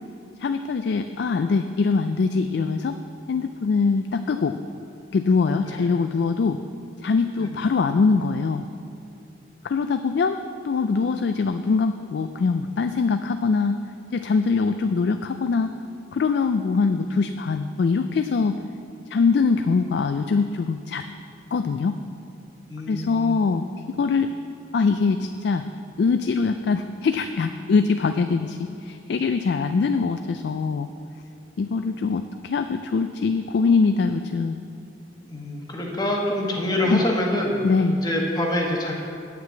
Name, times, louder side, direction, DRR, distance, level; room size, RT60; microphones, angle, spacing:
voice 1, 0.4-3.0 3.3-4.6 5.1-6.6 7.0-8.7 9.6-10.4 10.6-13.8 14.1-15.7 16.1-18.5 19.1-21.0 21.5-21.9 22.9-23.7 24.0-24.3 24.7-25.6 26.0-30.9 31.6-34.6 36.9-37.0 37.6-38.0, left 4 dB, 60° left, 8 dB, 0.3 m, -23 dB
voice 2, 22.7-23.4 35.3-37.6 38.0-39.0, left 1 dB, 20° left, -1 dB, 1.2 m, -26 dB
9.4 x 5.9 x 7.6 m, 2.6 s
head